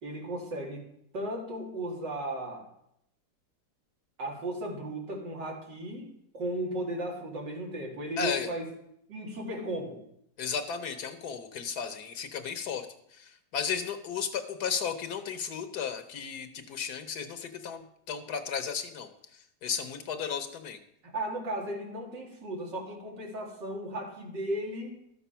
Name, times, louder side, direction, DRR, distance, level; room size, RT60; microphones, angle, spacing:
voice 1, 0.0-0.8 1.1-2.6 4.2-8.6 9.1-10.0 21.1-25.0, right 1 dB, 80° right, 0 dB, 2.9 m, -35 dB
voice 2, 8.2-8.5 10.4-12.9 13.1-20.8, left 7 dB, 65° left, 9 dB, 1.4 m, -34 dB
13.0 x 7.1 x 5.6 m, 0.76 s
omnidirectional pair, 1.9 m